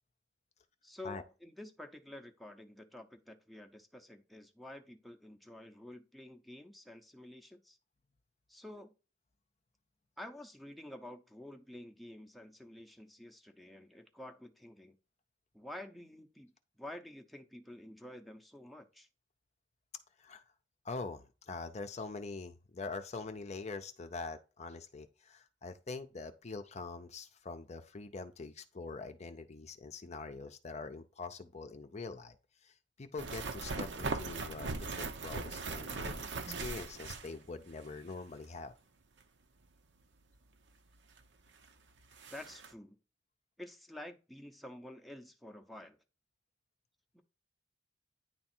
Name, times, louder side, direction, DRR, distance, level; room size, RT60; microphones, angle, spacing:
voice 1, 0.8-7.8 8.5-8.9 10.2-14.9 15.5-19.1 42.3-43.0 43.6-46.0 47.1-47.2, left 1 dB, ahead, 0.7 m, -50 dB
voice 2, 20.8-32.4 32.6-36.3 36.6-38.7, left 3 dB, 35° left, 0.6 m, -44 dB
sound 1, 33.2-37.8 38.1-38.2 41.2-41.3 41.6-41.7 42.0-42.7, right 3 dB, 70° right, 0.9 m, -39 dB
9.7 x 3.6 x 4.4 m
head